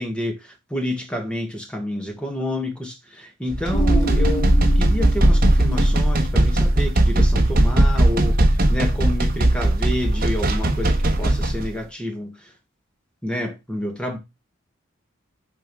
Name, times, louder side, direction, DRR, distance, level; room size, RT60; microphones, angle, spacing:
voice 1, 0.0-12.5 13.2-14.2, left 1 dB, 5° left, 1.6 m, -29 dB
sound 1, 3.5-11.7, right 1 dB, 45° right, 1.2 m, -19 dB
sound 2, 3.7-8.8, equal, 65° left, 2.2 m, -23 dB
10.5 x 3.7 x 4.8 m
head